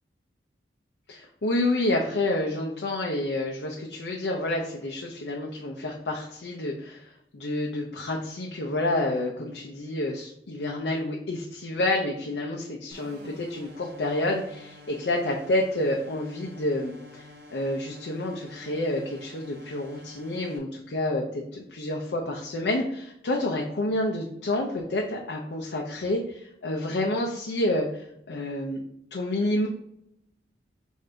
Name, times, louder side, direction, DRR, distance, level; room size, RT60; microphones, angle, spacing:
voice 1, 1.1-17.3 17.5-28.8 29.1-29.7, left 1 dB, 80° left, 0 dB, 0.6 m, -29 dB
sound 1, 12.9-20.6, left 1 dB, 70° right, 0.8 m, -49 dB
5.0 x 2.7 x 3.3 m, 0.77 s
head